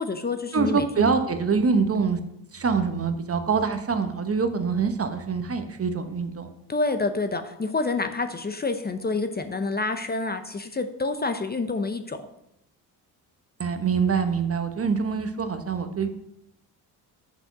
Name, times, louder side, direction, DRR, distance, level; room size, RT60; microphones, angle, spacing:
voice 1, 0.0-0.8 6.7-12.2, left 3 dB, 25° left, 8 dB, 0.8 m, -28 dB
voice 2, 0.5-2.2 2.5-6.5 13.6-16.1, right 5 dB, 35° right, 8 dB, 1.1 m, -25 dB
7.9 x 6.2 x 6.0 m, 0.79 s
cardioid pair, 85°, 41 cm